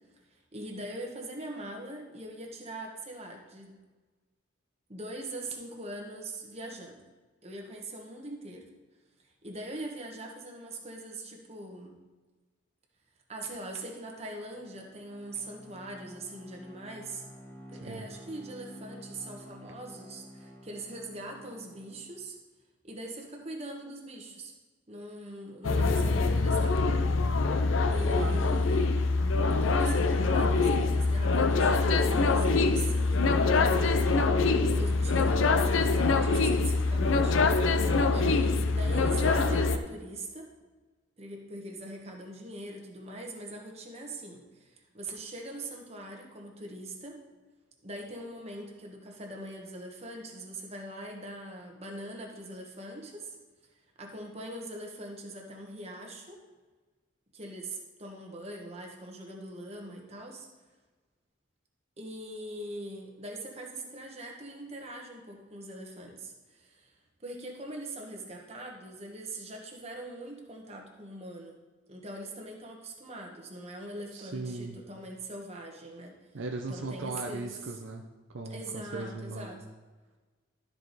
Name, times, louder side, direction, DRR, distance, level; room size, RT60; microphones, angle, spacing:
voice 1, 0.3-3.8 4.9-7.0 7.4-8.6 9.4-12.0 13.3-17.2 17.7-22.4 22.8-24.5 24.9-26.8 27.9-29.0 29.6-33.8 34.6-37.4 38.1-40.5 41.2-47.2 47.8-53.4 54.0-56.4 57.3-60.5 62.0-66.9 67.2-71.6 71.9-76.1 76.7-77.5 78.5-79.7, right 1 dB, 30° right, 0 dB, 1.2 m, -42 dB
Bowed string instrument, 14.5-22.3, equal, 10° left, 0.9 m, -50 dB
sound 1, 25.6-39.8, left 3 dB, 75° left, 0.5 m, -24 dB
voice 2, 28.1-28.6 34.5-34.9 74.1-74.8 76.3-79.6, right 3 dB, 65° right, 2 dB, 0.6 m, -38 dB
12.5 x 4.8 x 4.0 m, 1.3 s
head